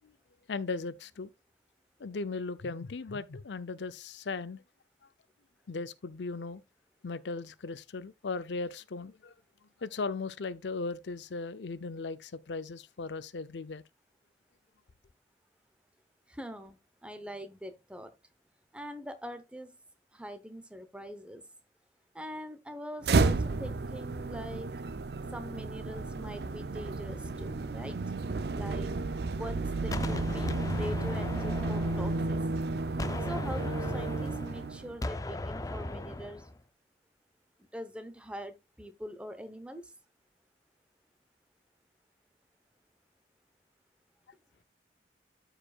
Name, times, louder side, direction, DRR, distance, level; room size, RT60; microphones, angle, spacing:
voice 1, 0.5-1.3 2.0-4.6 5.7-6.6 7.0-9.3 9.8-13.8, left 4 dB, 85° left, 0.6 m, -37 dB
voice 2, 16.3-18.1 18.7-19.8 20.1-21.5 22.1-24.7 25.3-28.0 28.5-28.9 29.3-32.4 33.2-36.5 37.6-39.9, equal, 5° right, 0.8 m, -43 dB
sound 1, 23.0-35.0, right 3 dB, 65° right, 0.5 m, -32 dB
Gunshot gunfire, 29.9-32.6 33.0-36.5, left 2 dB, 20° left, 0.4 m, -37 dB
13.5 x 4.9 x 2.3 m
head